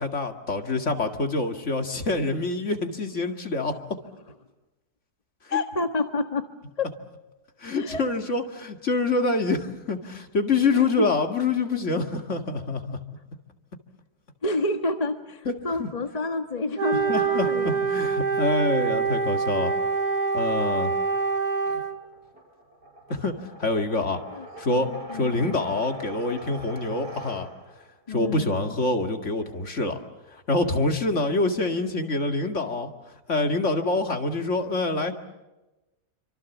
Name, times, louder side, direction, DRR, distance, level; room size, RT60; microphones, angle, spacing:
voice 1, 0.0-3.7 5.5-5.6 7.6-13.0 15.5-15.6 15.8-15.9 17.1-19.7 20.3-20.9 23.1-24.2 24.6-27.5 28.1-30.0 30.5-32.9 33.3-35.1, left 3 dB, 45° left, 5 dB, 2.4 m, -26 dB
voice 2, 5.5-6.5 6.8-6.9 7.7-8.0 10.7-11.1 14.4-17.8 24.3-24.4 24.7-25.6 28.1-28.7, left 2 dB, 25° left, 6 dB, 1.3 m, -29 dB
Wind instrument woodwind instrument, 16.8-22.0, right 5 dB, 65° right, 2.5 m, -25 dB
sound 1, 19.7-27.9, right 1 dB, 85° right, 5.0 m, -44 dB
28.0 x 25.5 x 7.3 m, 1.0 s
omnidirectional pair, 1.7 m